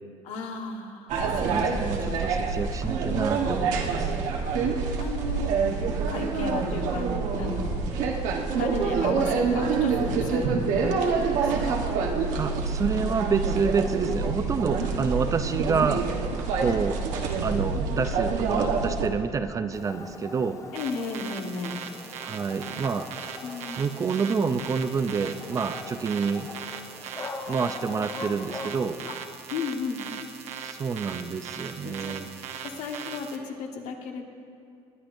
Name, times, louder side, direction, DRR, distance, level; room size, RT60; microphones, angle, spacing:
voice 1, 0.2-1.9 2.3-2.5 4.6-5.5 6.1-7.1 7.4-7.8 8.1-8.3 8.6-11.8 15.7-15.8 20.7-21.8 23.4-23.9 29.0-29.2 29.5-30.0 31.8-32.1 32.6-34.2, left 4 dB, 80° left, 2 dB, 1.4 m, -34 dB
sound 1, 1.1-19.1, right 5 dB, 90° right, 1.2 m, -26 dB
voice 2, 1.2-4.1 12.4-16.0 16.6-17.0 17.4-20.6 22.2-23.1 23.8-26.5 27.5-29.0 30.6-32.3, right 5 dB, 25° right, 10 dB, 0.4 m, -28 dB
Dog, 19.7-28.9, left 3 dB, 25° left, 0.9 m, -42 dB
sound 2, 20.7-33.4, right 7 dB, 60° right, 0.9 m, -40 dB
20.0 x 10.0 x 2.6 m, 2.5 s
cardioid pair, 145°, 12 cm